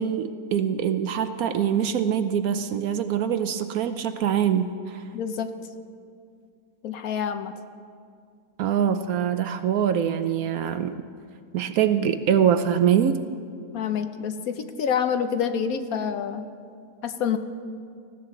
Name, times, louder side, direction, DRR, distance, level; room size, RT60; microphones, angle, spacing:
voice 1, 0.0-5.0 8.6-11.0 11.5-13.2, right 8 dB, 70° right, 10 dB, 1.0 m, -24 dB
voice 2, 5.1-5.5 6.8-7.6 13.7-16.4 17.0-17.4, left 7 dB, 65° left, 9 dB, 1.1 m, -27 dB
19.0 x 16.0 x 3.8 m, 2.3 s
omnidirectional pair, 1.8 m